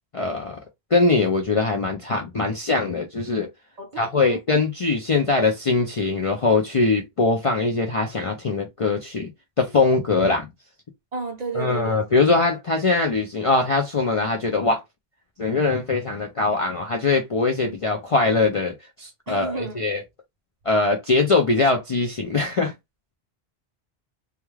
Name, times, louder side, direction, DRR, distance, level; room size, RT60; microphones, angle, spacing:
voice 1, 0.1-0.6 0.9-3.5 4.0-9.3 9.6-10.5 11.6-14.8 15.4-20.0 20.7-22.7, left 3 dB, 50° left, 0.4 m, -22 dB
voice 2, 3.8-4.4 11.1-12.2 19.3-19.8, right 4 dB, 50° right, 0.7 m, -33 dB
2.3 x 2.3 x 3.1 m
omnidirectional pair, 1.0 m